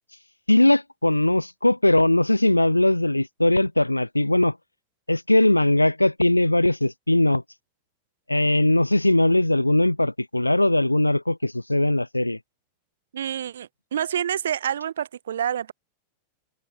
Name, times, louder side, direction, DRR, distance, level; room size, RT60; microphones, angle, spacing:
voice 1, 0.5-4.6 5.1-7.4 8.3-12.4, left 1 dB, 85° left, 2.0 m, -20 dB
voice 2, 13.1-15.7, right 9 dB, 65° right, 4.3 m, -28 dB
figure-of-eight pair, 90°, 0 cm